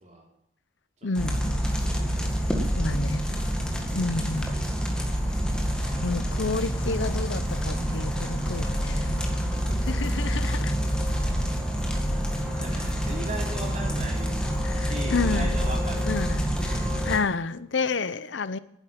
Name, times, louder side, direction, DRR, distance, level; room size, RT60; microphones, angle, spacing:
voice 1, 1.0-1.6 2.8-3.2 3.9-4.6 6.0-9.2 9.9-10.7 14.6-15.7 16.0-18.6, left 4 dB, 75° left, 0.7 m, -30 dB
sound 1, 1.1-17.2, equal, 5° left, 1.9 m, -27 dB
voice 2, 1.8-2.1 9.5-10.4 10.8-10.9 12.3-14.3 14.8-16.8, right 1 dB, 35° right, 4.1 m, -39 dB
11.5 x 10.0 x 9.3 m
head